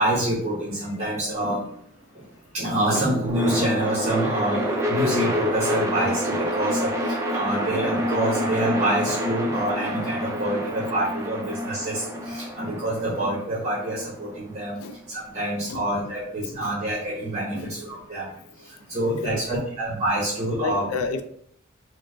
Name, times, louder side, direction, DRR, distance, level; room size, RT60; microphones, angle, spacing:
voice 1, 0.0-1.6 2.5-14.8 15.1-18.2 18.9-20.9, right 1 dB, 30° right, 0.8 m, -26 dB
sound 1, 2.9-15.0, equal, 15° right, 0.4 m, -28 dB
voice 2, 19.0-19.4 20.6-21.2, left 4 dB, 75° left, 0.4 m, -30 dB
4.3 x 2.0 x 2.5 m
head